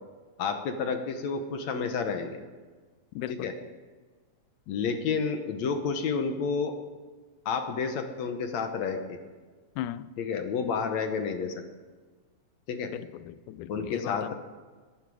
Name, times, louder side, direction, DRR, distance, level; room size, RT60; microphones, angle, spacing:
voice 1, 0.4-2.4 3.3-3.5 4.7-6.8 7.5-9.2 10.2-11.5 12.7-12.9 13.7-14.4, left 5 dB, 70° left, 6 dB, 2.2 m, -30 dB
voice 2, 3.2-3.5 9.8-10.1 12.9-14.4, left 13 dB, 85° left, 16 dB, 2.1 m, -37 dB
21.0 x 13.5 x 4.8 m, 1.4 s
omnidirectional pair, 3.5 m